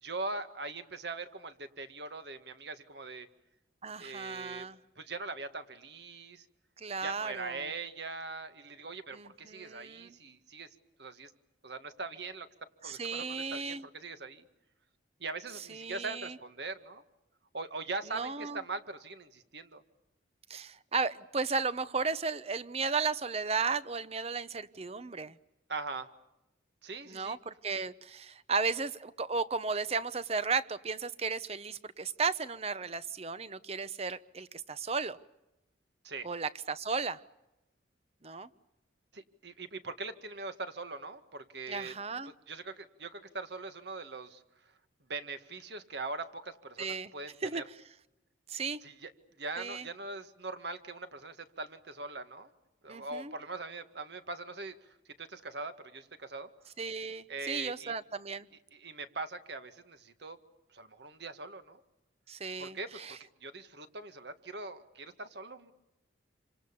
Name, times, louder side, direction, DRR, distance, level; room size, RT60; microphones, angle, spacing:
voice 1, 0.0-3.3 4.0-4.7 5.0-6.5 7.0-10.7 11.0-11.3 11.6-12.5 12.8-14.4 15.2-17.0 17.5-19.8 25.7-26.1 26.8-27.4 36.0-36.3 39.1-41.9 42.2-44.4 45.1-47.6 48.8-49.1 49.4-52.5 52.8-56.5 57.3-57.9 58.5-60.4 60.7-61.8 62.6-65.7, right 3 dB, 60° right, 9 dB, 1.9 m, -41 dB
voice 2, 3.8-4.8 6.8-7.7 9.1-10.1 12.8-13.8 15.7-16.3 18.1-18.6 20.5-25.3 27.1-35.2 36.2-37.2 38.2-38.5 41.7-42.3 46.8-47.1 47.4-47.6 48.5-48.8 49.6-49.8 52.9-53.3 56.8-58.5 62.3-63.2, right 4 dB, 35° right, 15 dB, 0.9 m, -35 dB
28.0 x 26.0 x 7.0 m, 0.93 s
head